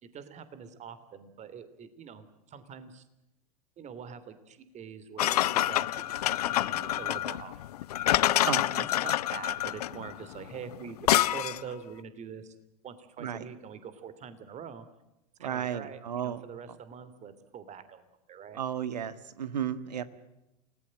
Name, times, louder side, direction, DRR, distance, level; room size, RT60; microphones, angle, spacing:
voice 1, 0.0-3.0 3.8-8.7 9.0-12.5 12.8-14.9 15.4-18.6, right 7 dB, 35° right, 13 dB, 3.0 m, -45 dB
sound 1, 5.2-11.7, left 14 dB, 70° left, 0.8 m, -27 dB
voice 2, 8.4-8.9 13.2-13.4 15.4-16.4 18.5-20.0, right 9 dB, 80° right, 14 dB, 1.7 m, -33 dB
29.0 x 19.5 x 7.7 m, 0.92 s
figure-of-eight pair, 85°, 21 cm